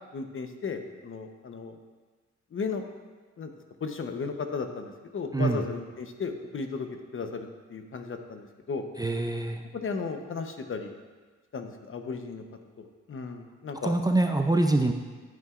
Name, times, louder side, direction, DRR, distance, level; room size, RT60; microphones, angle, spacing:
voice 1, 0.1-1.8 2.5-2.8 3.4-3.5 3.8-8.8 9.7-10.9 11.5-12.4 12.8-13.9, left 5 dB, 40° left, 6 dB, 1.0 m, -35 dB
voice 2, 9.0-9.6 13.8-14.9, right 2 dB, 10° right, 4 dB, 0.6 m, -24 dB
11.0 x 9.1 x 2.5 m, 1.4 s
cardioid pair, 80°, 31 cm